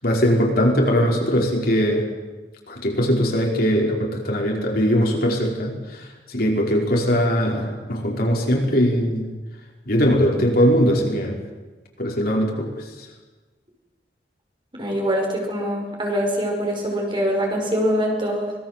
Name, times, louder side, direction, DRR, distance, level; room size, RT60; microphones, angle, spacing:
voice 1, 0.0-2.1 2.7-9.3 9.9-11.4 12.0-12.7, equal, 55° left, 0 dB, 5.4 m, -20 dB
voice 2, 14.7-18.5, equal, 30° right, 0 dB, 6.1 m, -23 dB
25.5 x 20.5 x 7.8 m, 1.2 s
head